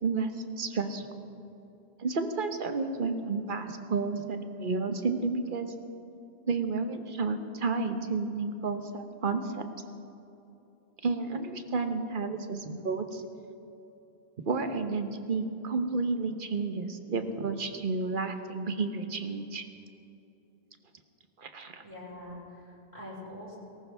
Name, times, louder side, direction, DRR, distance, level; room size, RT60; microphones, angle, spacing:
voice 1, 0.0-1.0 2.0-5.7 6.5-9.6 11.0-13.2 14.5-19.6 21.4-21.8, right 4 dB, 50° right, 7 dB, 1.2 m, -31 dB
voice 2, 21.8-23.6, left 1 dB, 30° right, -7 dB, 4.8 m, -44 dB
19.0 x 18.0 x 3.5 m, 2.9 s
omnidirectional pair, 1.1 m